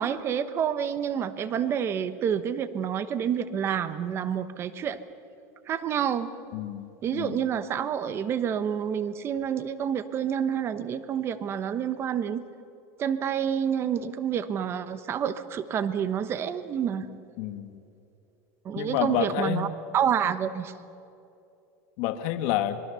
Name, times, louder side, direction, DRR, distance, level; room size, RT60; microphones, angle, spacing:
voice 1, 0.0-5.0 5.7-6.3 7.0-12.4 13.0-17.1 18.6-19.7 19.9-20.7, right 8 dB, 30° right, 13 dB, 1.1 m, -28 dB
voice 2, 6.5-7.5 17.4-17.8 18.8-19.6 22.0-22.8, left 12 dB, 60° left, 8 dB, 1.4 m, -29 dB
26.5 x 22.0 x 7.0 m, 2.7 s
supercardioid pair, 155°, 9 cm